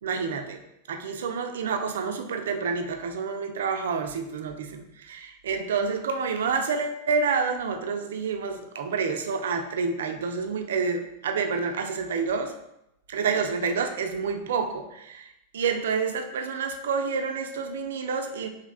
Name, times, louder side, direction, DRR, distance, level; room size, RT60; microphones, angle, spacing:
voice 1, 0.0-0.6 0.9-12.5 13.1-15.3 15.5-18.5, right 5 dB, 60° right, 5 dB, 0.3 m, -28 dB
3.2 x 2.5 x 2.3 m, 0.84 s
figure-of-eight pair, 90°, 0 cm